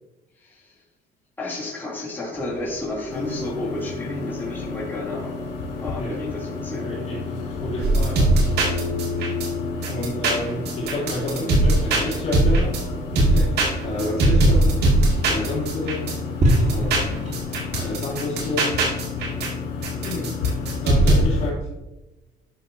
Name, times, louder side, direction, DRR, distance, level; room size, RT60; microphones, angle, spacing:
voice 1, 0.4-0.7 1.4-5.4 5.7-6.9, left 2 dB, 10° left, -6 dB, 3.2 m, -31 dB
sound 1, 2.3-17.8, right 1 dB, 45° right, 2.0 m, -32 dB
sound 2, 3.1-21.5, left 4 dB, 85° left, 2.3 m, -31 dB
voice 2, 6.8-8.4 9.8-12.8 13.2-14.9 15.3-16.1 16.6-17.3 17.8-18.8 20.0-21.7, left 2 dB, 40° left, -6 dB, 3.1 m, -30 dB
sound 3, 7.8-9.5 9.8-12.8 13.2-16.2 16.5-19.5 19.8-21.2, right 2 dB, 75° right, 2.5 m, -20 dB
11.5 x 6.3 x 2.8 m, 1.0 s
cardioid pair, 110°, 17 cm